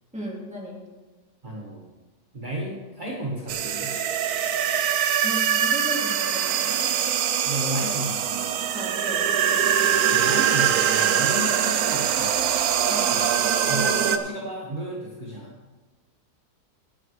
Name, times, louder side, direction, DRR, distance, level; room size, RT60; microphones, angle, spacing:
voice 1, 0.1-0.8 5.2-6.8 8.7-9.3 12.9-13.2, equal, 5° right, -3 dB, 2.6 m, -35 dB
voice 2, 1.4-1.9 2.3-4.0 7.4-8.6 10.1-12.5 13.1-13.3 13.7-15.6, equal, 30° right, -3 dB, 1.7 m, -33 dB
sound 1, 3.5-14.2, right 9 dB, 65° right, 1.1 m, -23 dB
17.5 x 9.0 x 3.4 m, 1.2 s
omnidirectional pair, 1.9 m